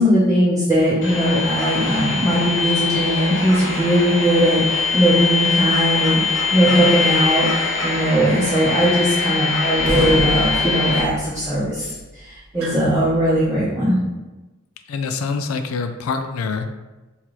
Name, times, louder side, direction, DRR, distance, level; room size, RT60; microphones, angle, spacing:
voice 1, 0.0-11.9 12.2-13.9, equal, 15° right, -9 dB, 0.6 m, -19 dB
sound 1, 1.0-11.0, left 4 dB, 65° left, 0.9 m, -22 dB
sound 2, 9.7-13.6, right 1 dB, 80° right, 0.7 m, -28 dB
voice 2, 14.9-16.7, left 4 dB, 80° left, 8 dB, 0.4 m, -25 dB
3.7 x 2.9 x 3.0 m, 1.1 s
head